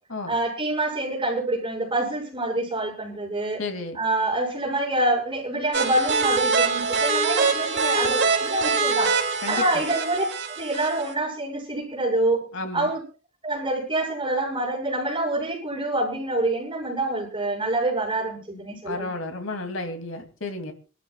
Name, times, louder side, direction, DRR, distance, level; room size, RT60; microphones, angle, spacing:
voice 1, 0.3-3.6 3.9-9.1 9.5-10.2 10.6-12.4 12.7-13.0 13.4-19.1, right 1 dB, 25° right, 0 dB, 6.6 m, -26 dB
voice 2, 3.6-4.0 9.4-9.8 12.5-12.9 18.8-20.7, left 2 dB, 70° left, 5 dB, 2.7 m, -32 dB
sound 1, 5.7-11.1, right 4 dB, 60° right, 3.2 m, -24 dB
27.0 x 13.0 x 2.4 m, 0.35 s
head